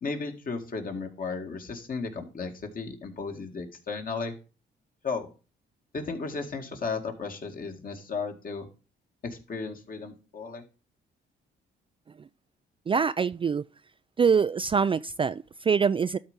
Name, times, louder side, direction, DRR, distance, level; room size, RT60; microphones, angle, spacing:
voice 1, 0.0-4.3 5.0-5.3 5.9-8.7 9.2-10.6, left 4 dB, 45° left, 2.1 m, -34 dB
voice 2, 12.9-13.6 14.2-16.2, right 6 dB, 25° right, 0.3 m, -24 dB
12.5 x 4.3 x 5.1 m
cardioid pair, 90°, 20 cm